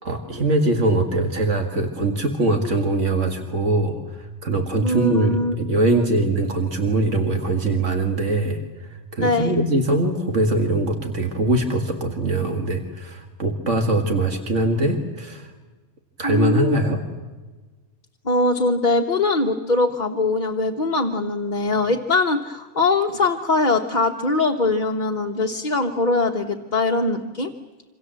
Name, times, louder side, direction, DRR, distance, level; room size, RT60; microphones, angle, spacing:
voice 1, 0.0-8.6 8.9-15.5 16.2-17.0, right 2 dB, 80° right, 4 dB, 2.2 m, -22 dB
voice 2, 4.8-5.5 5.9-6.1 9.2-9.5 16.2-16.8 18.2-27.5, left 2 dB, 40° left, 2 dB, 1.3 m, -22 dB
27.5 x 25.5 x 7.6 m, 1.3 s
omnidirectional pair, 1.2 m